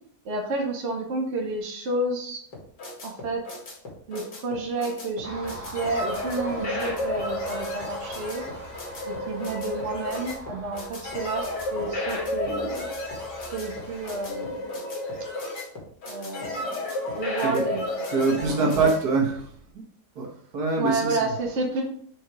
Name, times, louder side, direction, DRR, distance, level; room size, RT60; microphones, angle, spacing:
voice 1, 0.2-2.4 3.0-3.4 4.1-8.4 9.0-12.9 13.5-14.9 16.1-16.8 17.0-17.9 18.3-19.0 20.8-21.8, right 2 dB, 45° right, 0 dB, 1.3 m, -30 dB
sound 1, 2.5-19.0, left 1 dB, 85° left, 2.6 m, -32 dB
Car passing by, 5.2-14.6, right 1 dB, 10° right, 0.8 m, -43 dB
voice 2, 18.1-19.5 20.1-21.3, right 4 dB, 65° right, -1 dB, 1.7 m, -24 dB
5.3 x 4.7 x 4.7 m, 0.62 s
omnidirectional pair, 1.8 m